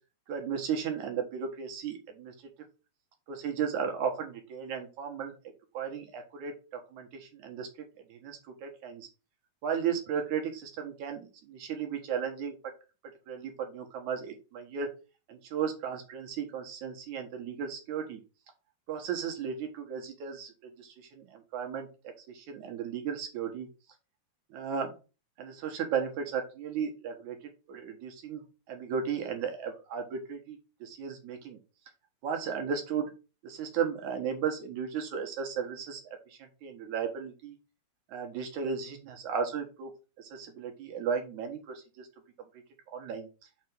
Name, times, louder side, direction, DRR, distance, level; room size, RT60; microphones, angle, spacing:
voice 1, 0.3-2.3 3.3-5.3 5.7-7.7 8.1-9.1 9.6-12.7 13.3-14.9 15.3-18.2 18.9-23.7 24.5-24.9 25.4-27.4 27.7-28.4 28.7-31.6 32.2-33.1 33.4-36.0 36.3-37.6 38.1-39.9 40.2-42.1 42.9-43.3, right 7 dB, 60° right, 4 dB, 2.4 m, -35 dB
6.0 x 4.2 x 6.1 m, 0.31 s
omnidirectional pair, 4.4 m